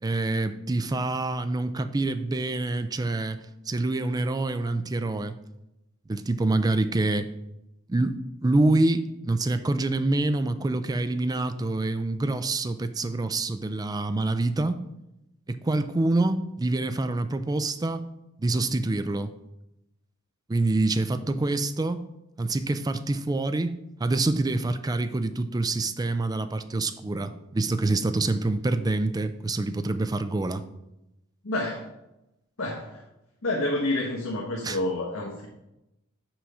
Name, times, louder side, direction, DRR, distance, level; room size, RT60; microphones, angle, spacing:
voice 1, 0.0-5.4 6.1-7.3 7.9-14.8 15.5-18.1 18.4-19.3 20.5-22.1 22.4-30.6 34.6-34.8, right 2 dB, 20° right, 11 dB, 0.4 m, -26 dB
voice 2, 31.4-31.9 32.6-33.1 33.4-35.5, left 2 dB, 70° left, -2 dB, 1.1 m, -29 dB
6.0 x 5.6 x 4.8 m, 0.90 s
head